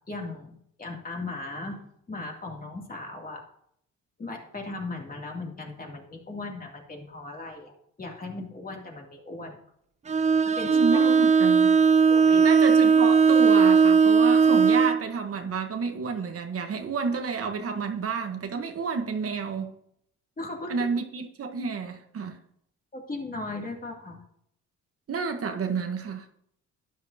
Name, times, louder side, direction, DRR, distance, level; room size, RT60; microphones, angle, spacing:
voice 1, 0.1-3.4 4.2-9.6 10.4-11.1 12.1-12.4 20.4-20.8 22.9-24.2, left 2 dB, 30° left, 0 dB, 2.8 m, -37 dB
Bowed string instrument, 10.1-15.0, right 5 dB, 25° right, 0.5 m, -18 dB
voice 2, 10.6-11.8 12.4-19.7 20.7-22.4 25.1-26.3, right 5 dB, 50° right, 5 dB, 1.3 m, -30 dB
12.0 x 10.0 x 2.9 m, 0.70 s
cardioid pair, 90°, 30 cm